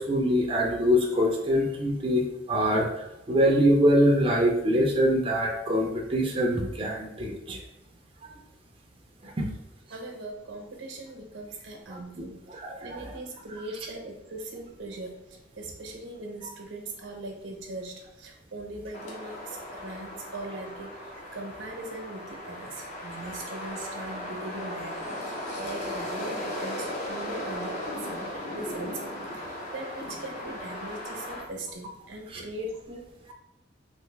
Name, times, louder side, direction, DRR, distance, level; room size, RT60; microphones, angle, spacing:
voice 1, 0.0-7.6 9.4-9.5 11.9-12.0 12.5-13.1 32.3-32.4, equal, 30° right, -1 dB, 0.4 m, -24 dB
voice 2, 9.9-12.4 12.8-15.2 15.6-20.9 21.3-25.0 25.2-33.1, right 2 dB, 85° right, 2 dB, 0.8 m, -40 dB
sound 1, 18.9-31.4, left 1 dB, 40° left, 0.7 m, -37 dB
3.2 x 2.5 x 3.2 m, 0.93 s
head